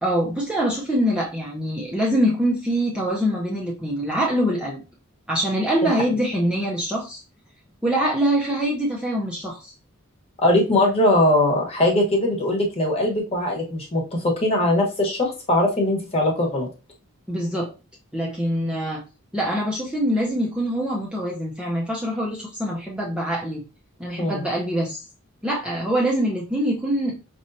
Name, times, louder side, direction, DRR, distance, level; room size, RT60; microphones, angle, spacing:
voice 1, 0.0-4.8 5.3-7.2 7.8-9.7 17.3-17.7 18.1-19.0 19.3-23.6 24.0-25.0 25.4-27.1, equal, 5° right, -4 dB, 0.7 m, -24 dB
voice 2, 10.4-16.7 24.2-24.4, left 1 dB, 30° left, 0 dB, 1.2 m, -21 dB
5.3 x 3.2 x 2.7 m, 0.32 s
head